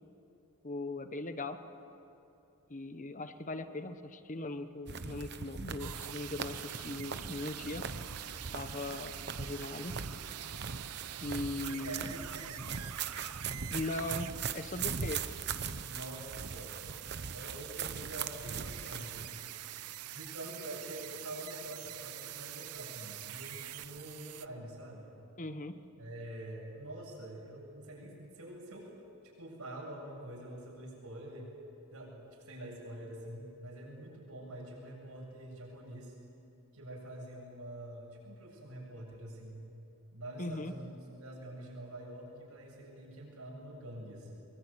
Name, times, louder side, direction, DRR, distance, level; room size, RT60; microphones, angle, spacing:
voice 1, 0.6-1.6 2.7-7.8 8.5-9.9 11.2-12.1 13.7-15.2 25.4-25.7 40.4-40.7, left 2 dB, 35° left, 9 dB, 1.2 m, -39 dB
sound 1, 4.9-19.3, right 6 dB, 50° right, 1.0 m, -40 dB
sound 2, 5.8-24.5, right 12 dB, 90° right, 0.7 m, -45 dB
voice 2, 11.6-13.0 15.8-16.8 17.2-19.4 20.0-25.1 26.0-28.9 29.4-31.5 31.9-36.2 36.7-39.6 40.1-44.5, right 1 dB, 75° right, -2 dB, 7.6 m, -46 dB
23.5 x 23.5 x 8.6 m, 2.8 s
head